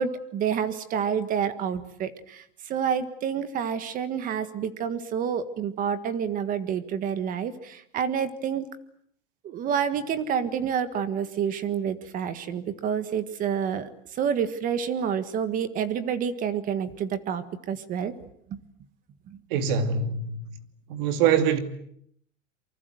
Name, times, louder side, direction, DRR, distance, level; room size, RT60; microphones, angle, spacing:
voice 1, 0.0-8.7 9.4-18.1 18.5-18.6 19.3-19.4, right 7 dB, 20° right, 1.6 m, -28 dB
voice 2, 19.5-20.5 20.9-21.6, right 7 dB, 45° right, 2.7 m, -24 dB
28.0 x 24.5 x 7.9 m
supercardioid pair, 170°, 38 cm